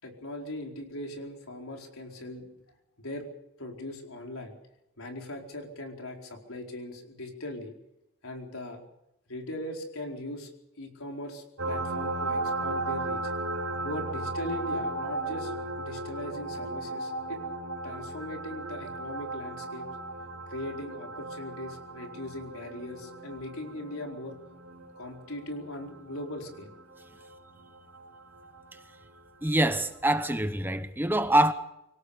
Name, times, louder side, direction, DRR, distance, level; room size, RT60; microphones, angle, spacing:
voice 1, 0.0-2.5 3.0-3.2 3.6-4.5 5.0-7.7 8.2-8.8 9.3-10.5 10.8-13.3 13.8-17.4 17.8-19.9 20.5-24.4 25.0-26.7, left 1 dB, 75° left, 4.6 m, -39 dB
sound 1, 11.6-28.8 30.4-30.5, right 2 dB, 75° right, 4.2 m, -36 dB
voice 2, 29.4-31.5, right 1 dB, 10° right, 0.9 m, -25 dB
25.0 x 17.5 x 6.9 m
head